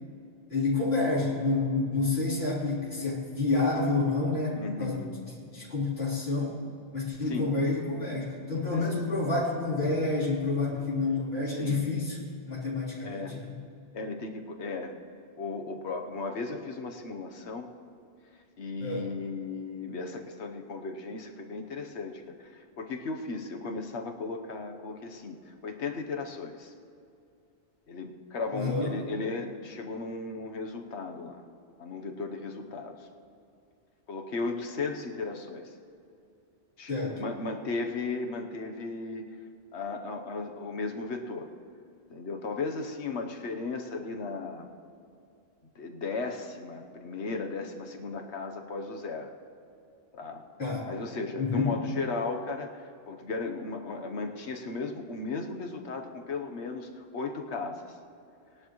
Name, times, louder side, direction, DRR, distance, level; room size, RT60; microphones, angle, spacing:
voice 1, 0.5-5.0 5.5-6.6 6.9-12.2 12.5-13.6 18.8-19.1 28.5-28.9 36.9-37.2 50.6-50.9 51.4-51.8, left 3 dB, 65° left, -7 dB, 3.9 m, -29 dB
voice 2, 4.5-5.1 7.2-7.5 8.7-8.8 11.5-11.9 13.0-13.3 13.9-15.0 15.4-17.7 18.6-26.7 27.9-31.4 31.8-33.1 34.1-35.7 36.8-39.2 39.7-41.5 42.1-44.7 45.7-49.3 50.1-50.4 50.8-57.8, left 3 dB, 85° left, 4 dB, 1.3 m, -36 dB
20.0 x 11.5 x 3.1 m, 2.6 s
omnidirectional pair, 1.1 m